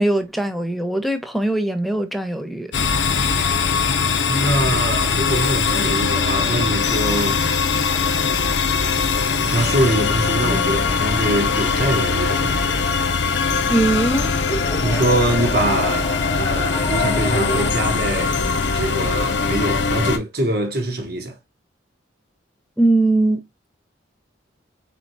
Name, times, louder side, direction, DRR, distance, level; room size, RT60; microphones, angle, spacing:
voice 1, 0.0-2.7 13.7-14.3 22.8-23.4, right 2 dB, ahead, 0.6 m, -20 dB
sound 1, 2.7-20.2, left 5 dB, 65° left, 0.6 m, -21 dB
voice 2, 4.3-7.5 9.4-12.8 14.8-18.4 18.7-21.4, right 1 dB, 55° right, 1.1 m, -23 dB
sound 2, 6.1-17.7, equal, 20° left, 1.1 m, -34 dB
4.3 x 4.3 x 2.6 m
head